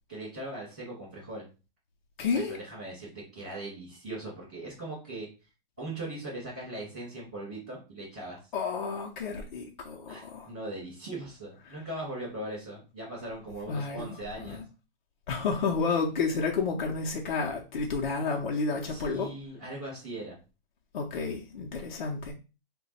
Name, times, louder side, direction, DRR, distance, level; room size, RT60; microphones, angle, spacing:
voice 1, 0.1-1.5 2.3-5.3 5.8-8.4 10.1-14.6 18.9-20.4, right 1 dB, 5° right, 0.3 m, -39 dB
voice 2, 2.2-2.6 8.5-10.5 13.7-14.2 14.4-14.6 15.3-19.3 20.9-22.3, left 4 dB, 55° left, 0.7 m, -31 dB
2.9 x 2.2 x 4.1 m
hypercardioid pair, 175°, 29 cm